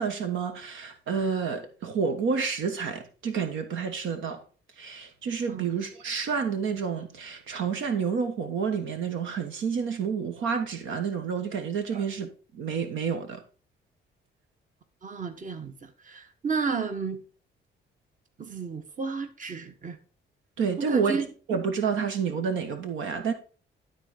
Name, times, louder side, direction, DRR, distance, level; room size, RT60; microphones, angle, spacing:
voice 1, 0.0-4.4 4.8-12.3 12.5-13.4 20.6-23.3, right 6 dB, 80° right, 1.3 m, -29 dB
voice 2, 15.0-17.2 18.4-20.0 20.8-21.3 22.0-22.1, right 5 dB, 40° right, 1.4 m, -32 dB
12.0 x 4.0 x 5.1 m
cardioid pair, 90°, 20 cm